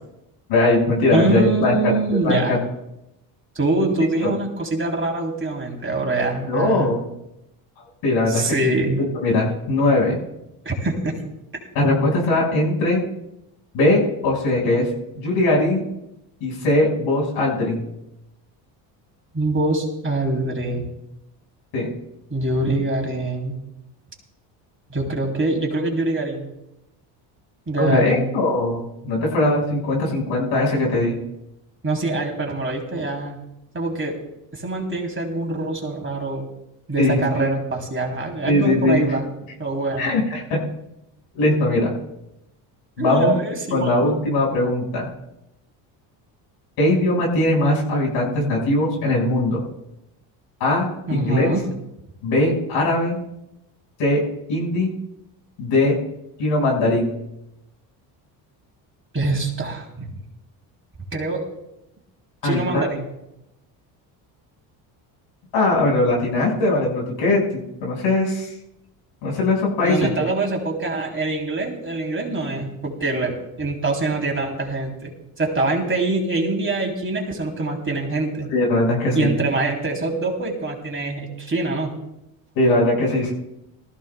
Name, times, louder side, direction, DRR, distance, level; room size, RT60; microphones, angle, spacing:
voice 1, 0.5-2.6 4.2-4.3 6.5-7.0 8.0-8.7 9.2-10.2 11.7-13.0 13.7-14.9 15.2-15.8 16.4-17.9 21.7-21.9 27.8-31.2 37.0-37.5 38.4-39.0 40.0-40.4 41.3-41.9 43.0-43.3 43.7-45.1 46.8-49.6 50.6-51.5 52.2-53.2 54.0-54.2 54.5-54.9 55.6-55.9 56.4-57.1 62.4-62.8 65.5-67.4 67.8-68.5 69.2-70.1 78.5-79.3 82.6-83.3, left 2 dB, 75° left, -2 dB, 5.5 m, -20 dB
voice 2, 1.1-2.6 3.6-7.0 8.3-9.0 10.7-11.1 19.3-20.9 22.3-23.5 24.9-26.5 27.7-28.3 31.8-33.4 33.7-34.2 34.5-36.5 36.9-39.3 39.6-40.1 43.0-43.9 51.1-51.6 59.1-60.1 61.1-61.5 62.4-63.0 69.8-75.1 75.4-78.5 79.2-81.9, right 2 dB, 25° right, 1 dB, 3.3 m, -24 dB
19.0 x 14.5 x 2.3 m, 0.85 s
supercardioid pair, 80°, 48 cm